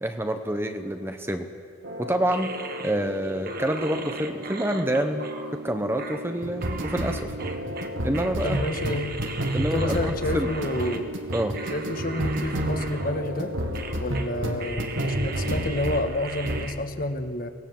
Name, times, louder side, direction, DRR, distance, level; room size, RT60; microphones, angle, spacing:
voice 1, 0.0-1.5 2.0-2.5 2.8-5.2 5.5-7.3 8.0-8.6 9.5-10.5 11.3-11.6, right 1 dB, 10° right, 6 dB, 0.9 m, -27 dB
sound 1, 1.8-16.1 16.4-16.7, right 1 dB, 70° right, 2.0 m, -31 dB
sound 2, 2.3-11.0 11.3-13.5 13.7-14.3 14.6-16.7, right 4 dB, 50° right, 1.5 m, -39 dB
voice 2, 8.4-9.2 9.6-11.1 11.7-13.5 14.0-17.5, left 1 dB, 45° left, 7 dB, 1.5 m, -29 dB
24.5 x 18.5 x 7.6 m, 2.3 s
head